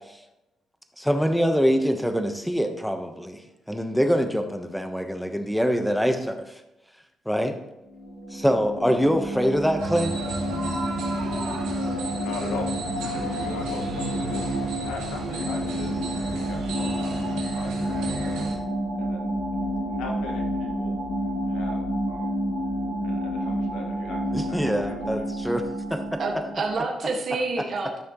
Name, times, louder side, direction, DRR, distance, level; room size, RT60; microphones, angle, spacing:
voice 1, 1.0-3.4 3.7-6.5 7.3-7.6 8.3-10.1 24.3-25.6 25.9-26.2, equal, ahead, 6 dB, 1.1 m, -24 dB
sound 1, 7.9-26.8, equal, 45° left, 3.5 m, -29 dB
sound 2, 9.8-18.6, right 3 dB, 85° right, 2.0 m, -34 dB
voice 2, 12.2-12.7 13.1-18.3 18.9-19.3 19.9-20.9 21.5-22.3 23.0-25.3, left 3 dB, 90° left, 1 dB, 1.7 m, -40 dB
voice 3, 26.2-28.0, right 3 dB, 50° right, 0 dB, 1.7 m, -28 dB
13.5 x 6.2 x 3.1 m, 0.95 s
cardioid pair, 90°, 0 cm